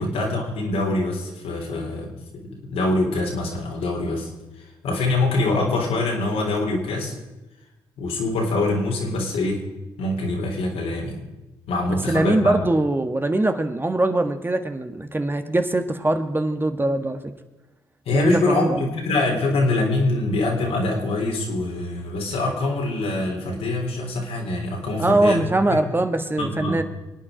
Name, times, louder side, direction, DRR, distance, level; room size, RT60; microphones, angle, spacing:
voice 1, 0.0-4.3 4.8-7.1 8.0-9.7 10.0-11.2 11.7-12.6 18.1-25.8 26.4-26.8, left 2 dB, 75° left, 0 dB, 3.6 m, -24 dB
voice 2, 12.1-17.2 18.1-18.8 25.0-26.8, right 2 dB, 20° right, 7 dB, 1.6 m, -22 dB
24.0 x 9.0 x 5.1 m, 1.1 s
supercardioid pair, 50°, 10 cm